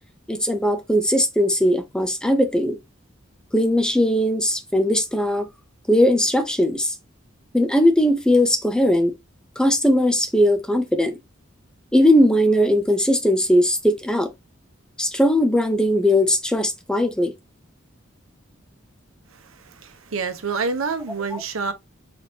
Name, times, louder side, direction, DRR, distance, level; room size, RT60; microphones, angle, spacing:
voice 1, 0.3-2.8 3.5-5.5 5.9-6.9 7.5-9.1 9.6-11.2 11.9-14.3 15.0-17.3 21.3-21.4, equal, 5° left, 0.4 m, -19 dB
voice 2, 19.3-21.7, right 4 dB, 90° right, 0.7 m, -28 dB
4.0 x 3.3 x 2.7 m
head